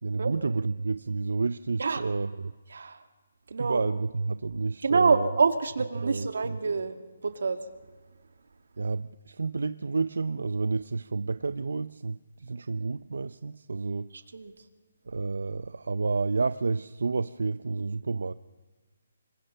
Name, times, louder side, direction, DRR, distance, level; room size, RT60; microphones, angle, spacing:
voice 1, 0.0-2.5 3.6-5.3 6.0-6.6 8.8-14.1 15.1-18.3, right 4 dB, 80° right, 0.6 m, -30 dB
voice 2, 2.7-3.0 3.5-3.8 4.8-7.0 7.2-7.6 14.1-14.5, right 4 dB, 65° right, 2.1 m, -26 dB
27.0 x 22.5 x 5.7 m
hypercardioid pair, 180°, 0 cm